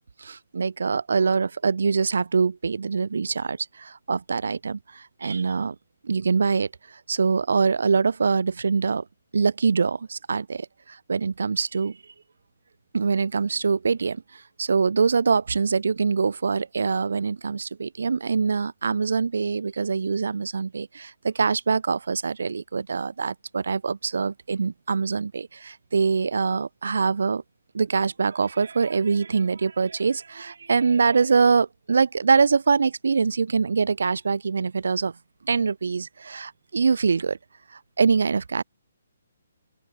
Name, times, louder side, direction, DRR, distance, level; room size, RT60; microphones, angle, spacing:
voice 1, 0.2-5.8 6.0-6.7 7.1-9.0 9.3-12.0 12.9-27.4 27.7-35.1 35.4-37.4 37.7-38.6, right 5 dB, 75° right, 4.5 m, -24 dB
open air
hypercardioid pair, 145°, 0 cm